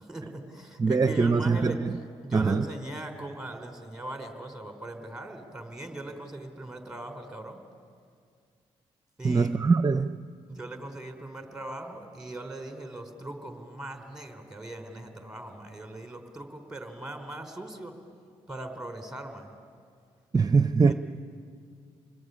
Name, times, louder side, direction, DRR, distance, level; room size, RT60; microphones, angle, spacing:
voice 1, 0.0-1.8 2.2-7.6 9.2-9.5 10.5-17.9 18.5-19.5 20.8-20.9, right 1 dB, 5° right, 4.6 m, -40 dB
voice 2, 0.8-1.9 2.3-2.7 9.2-10.2 20.3-20.9, right 4 dB, 30° right, 0.8 m, -23 dB
27.5 x 20.0 x 9.8 m
supercardioid pair, 50°, 13 cm